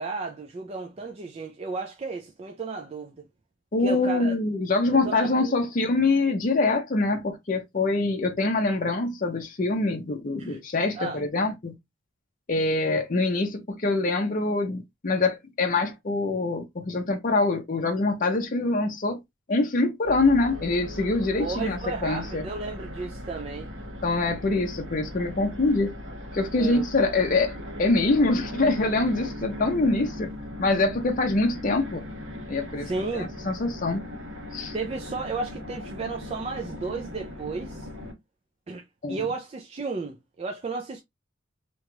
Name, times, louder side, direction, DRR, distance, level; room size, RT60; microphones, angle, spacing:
voice 1, 0.0-3.3 3.8-4.4 5.0-5.5 10.4-10.6 10.9-11.2 21.4-23.7 26.6-26.8 32.8-33.3 34.7-37.9 38.7-41.0, right 3 dB, 30° right, 0.4 m, -33 dB
voice 2, 3.7-11.7 12.5-19.2 19.5-22.4 24.0-25.9 26.3-30.3 30.6-32.0 32.5-34.0 34.5-34.7 39.0-39.3, left 3 dB, 40° left, 0.5 m, -24 dB
sound 1, 20.0-38.1, left 1 dB, 70° right, 1.0 m, -38 dB
2.9 x 2.3 x 3.0 m
head